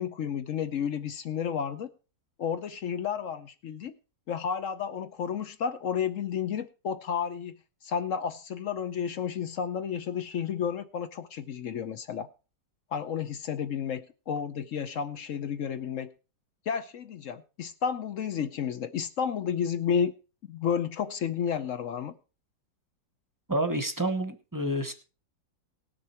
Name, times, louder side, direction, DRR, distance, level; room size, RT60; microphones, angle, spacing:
voice 1, 0.0-1.9 2.4-3.9 4.3-7.6 7.8-12.3 12.9-16.1 16.7-20.1 20.5-22.2, left 7 dB, 60° left, 0.9 m, -31 dB
voice 2, 23.5-24.9, right 1 dB, 15° right, 0.8 m, -29 dB
18.5 x 6.7 x 4.4 m
omnidirectional pair, 2.0 m